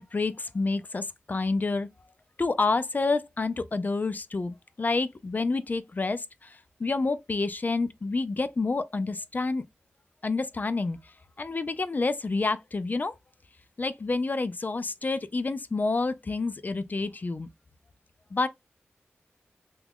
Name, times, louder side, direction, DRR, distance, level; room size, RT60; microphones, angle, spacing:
voice 1, 0.0-1.9 2.4-9.6 10.2-11.1 11.4-13.2 13.8-17.5 18.3-18.5, left 3 dB, 40° left, 0.4 m, -28 dB
3.0 x 2.3 x 3.5 m
cardioid pair, 50°, 4 cm